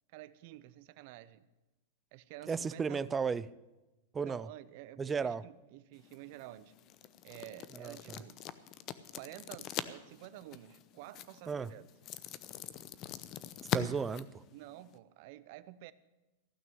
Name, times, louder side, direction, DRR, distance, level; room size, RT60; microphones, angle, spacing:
voice 1, 0.1-1.5 2.1-3.1 4.2-6.7 7.2-8.4 9.1-11.9 14.5-15.9, right 15 dB, 55° right, 16 dB, 0.7 m, -50 dB
voice 2, 2.5-3.5 4.1-4.5 5.0-5.4 7.7-8.2 11.5-11.7 13.7-14.4, right 5 dB, 15° right, 18 dB, 0.4 m, -34 dB
sound 1, 5.9-15.0, left 11 dB, 35° left, 0.7 m, -43 dB
15.0 x 6.1 x 9.2 m, 1.1 s
hypercardioid pair, 135°, 0 cm